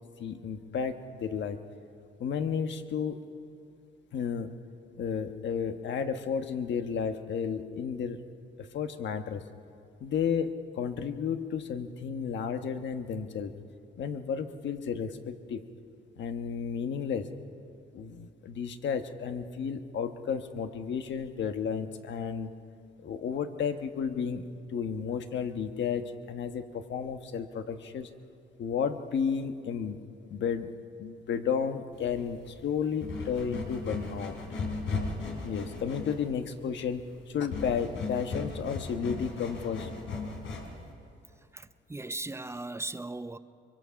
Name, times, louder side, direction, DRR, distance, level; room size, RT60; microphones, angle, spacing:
voice 1, 0.2-1.6 2.2-3.2 4.1-4.6 5.0-8.2 8.7-9.4 10.0-13.5 14.0-15.6 16.2-17.3 17.9-22.5 23.0-24.4 24.7-28.1 28.6-30.0 30.3-34.4 35.4-39.9, left 7 dB, 65° left, 1.3 m, -32 dB
sound 1, 31.9-40.9, left 3 dB, 85° left, 4.1 m, -37 dB
voice 2, 41.5-43.4, right 2 dB, 15° right, 0.7 m, -38 dB
24.0 x 23.0 x 5.8 m
cardioid pair, 90°, 20 cm